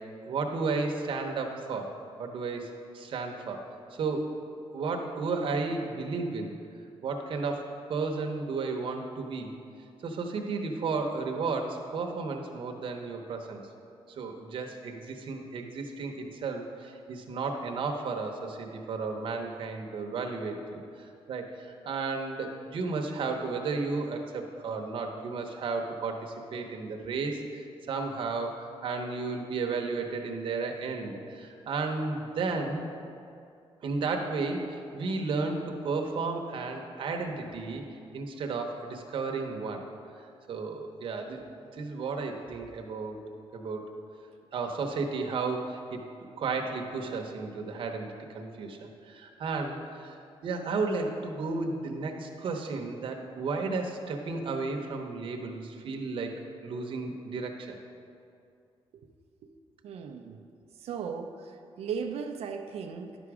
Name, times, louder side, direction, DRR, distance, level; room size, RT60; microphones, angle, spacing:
voice 1, 0.3-1.9 2.2-2.7 2.9-3.6 3.9-4.3 4.7-6.5 7.0-7.6 7.9-9.5 10.0-13.6 14.1-32.9 33.8-37.9 38.1-39.9 40.2-41.4 41.7-43.2 43.5-43.9 44.5-46.0 46.4-50.2 50.4-56.3 56.6-57.8, right 4 dB, 55° right, 3 dB, 0.9 m, -33 dB
voice 2, 59.8-60.4 60.8-61.5 61.8-63.2, right 6 dB, 80° right, 4 dB, 0.5 m, -36 dB
10.5 x 6.1 x 4.8 m, 2.4 s
wide cardioid pair, 180°, 10 cm